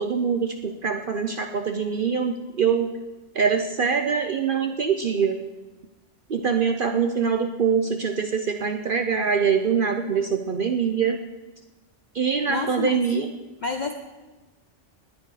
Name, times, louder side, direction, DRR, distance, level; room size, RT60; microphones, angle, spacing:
voice 1, 0.0-2.9 3.3-5.4 6.3-11.2 12.1-13.3, right 6 dB, 50° right, 5 dB, 0.9 m, -24 dB
voice 2, 12.5-13.0 13.6-13.9, left 4 dB, 45° left, 5 dB, 0.8 m, -28 dB
19.5 x 9.1 x 4.9 m, 1.2 s
omnidirectional pair, 1.2 m